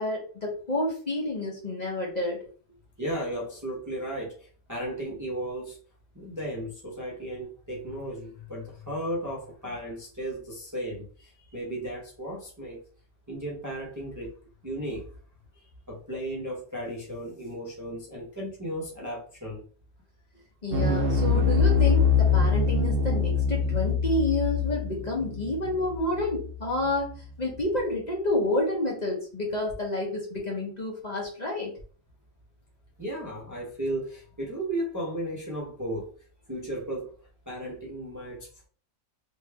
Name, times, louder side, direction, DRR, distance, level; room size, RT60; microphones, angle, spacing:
voice 1, 0.0-2.4 20.6-31.7, left 1 dB, 35° left, 0.9 m, -29 dB
voice 2, 3.0-5.8 6.1-12.8 13.3-14.3 14.6-15.1 15.5-19.6 26.8-26.9 33.0-36.1 36.5-37.1 37.5-38.7, right 1 dB, 20° right, 0.7 m, -35 dB
sound 1, 20.7-27.1, left 5 dB, 80° right, 1.0 m, -24 dB
3.2 x 2.5 x 3.3 m
omnidirectional pair, 1.3 m